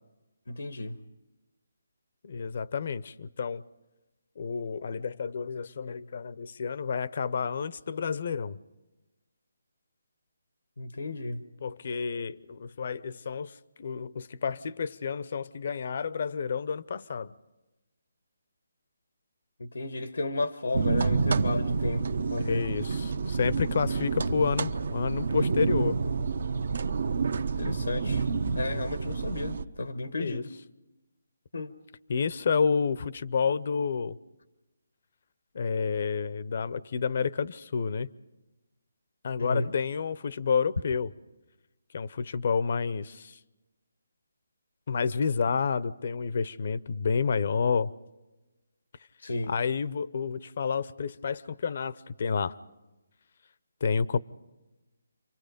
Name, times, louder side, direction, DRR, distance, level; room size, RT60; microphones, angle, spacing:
voice 1, 0.5-1.0 10.8-11.4 19.6-22.6 27.6-28.3 28.5-30.5 31.5-31.7 39.4-39.7 49.2-49.5, left 2 dB, 85° left, 1.3 m, -33 dB
voice 2, 2.2-3.6 4.4-8.6 11.6-17.4 22.4-26.0 30.2-30.4 32.1-34.2 35.5-38.1 39.2-41.1 41.9-43.4 44.9-47.9 49.5-52.6 53.8-54.2, left 5 dB, 50° left, 0.7 m, -30 dB
sound 1, 20.7-29.6, right 4 dB, 65° right, 0.9 m, -28 dB
29.5 x 24.5 x 5.2 m
hypercardioid pair, 160°, 0 cm